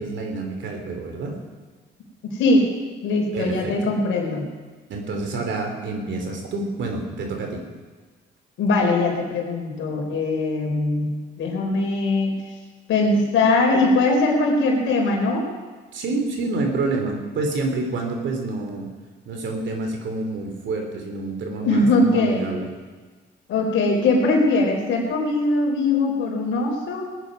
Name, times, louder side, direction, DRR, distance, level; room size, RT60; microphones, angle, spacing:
voice 1, 0.0-1.4 3.3-4.0 4.9-7.6 15.9-18.9 19.2-22.7, right 3 dB, 70° right, 3 dB, 3.1 m, -28 dB
voice 2, 2.2-2.7 3.0-4.5 8.6-12.3 12.9-15.5 21.6-22.5 23.5-27.1, left 2 dB, 80° left, 0 dB, 4.0 m, -21 dB
18.5 x 9.9 x 5.2 m, 1.4 s
cardioid pair, 90°, 20 cm